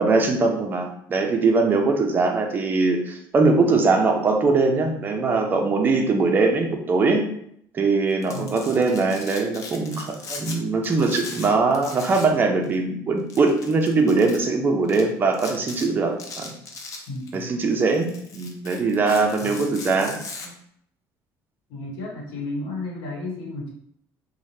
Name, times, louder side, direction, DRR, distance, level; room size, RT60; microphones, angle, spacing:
voice 1, 0.0-7.3 7.7-16.5 17.3-20.2 20.4-20.5, right 3 dB, 25° right, 3 dB, 0.4 m, -21 dB
Domestic sounds home sounds, 8.1-10.6 10.8-12.4 12.6-12.7 13.3-14.4 14.9-15.0 15.3-15.8 16.2-17.4 17.8-20.5, left 4 dB, 45° left, 0.5 m, -38 dB
voice 2, 17.1-17.5 19.4-19.6 21.7-23.7, left 2 dB, 85° left, -3 dB, 1.0 m, -33 dB
2.7 x 2.1 x 3.1 m, 0.71 s
cardioid pair, 145°, 8 cm